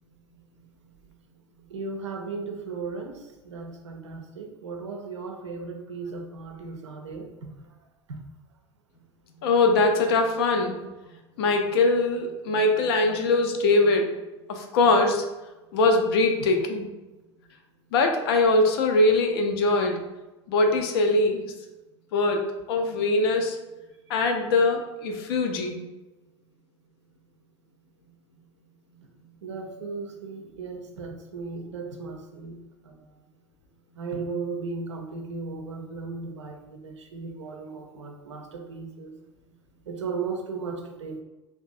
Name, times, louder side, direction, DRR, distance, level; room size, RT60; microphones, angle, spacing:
voice 1, 1.7-8.2 11.4-11.5 24.1-24.2 29.4-33.2 33.9-39.2 39.8-41.2, right 4 dB, 70° right, 3 dB, 0.4 m, -36 dB
voice 2, 9.4-10.8 11.4-14.1 14.5-15.2 15.7-16.9 17.9-20.0 20.5-21.5 22.1-23.6 24.1-25.8, left 2 dB, 55° left, 4 dB, 0.4 m, -22 dB
2.5 x 2.3 x 2.4 m, 1.1 s
figure-of-eight pair, 75°, 16 cm